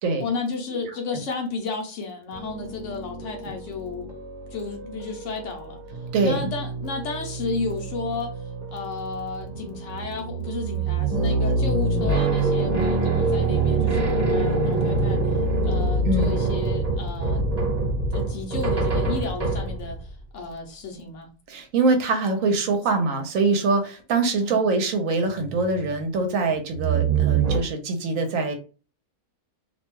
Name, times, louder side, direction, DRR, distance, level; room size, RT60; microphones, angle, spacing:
voice 1, 0.2-4.1 4.5-5.8 6.2-8.4 8.7-15.2 15.6-17.4 18.1-21.3 24.4-24.6, left 4 dB, 65° left, 2 dB, 0.9 m, -33 dB
Piano, 2.3-16.7, right 2 dB, 45° right, 0.7 m, -38 dB
voice 2, 6.1-6.5 16.0-16.3 21.5-28.6, right 3 dB, 70° right, 6 dB, 1.0 m, -23 dB
sound 1, 9.9-20.1 25.3-26.0 26.7-27.6, right 3 dB, 30° right, 1.2 m, -23 dB
2.6 x 2.2 x 3.0 m, 0.34 s
omnidirectional pair, 1.5 m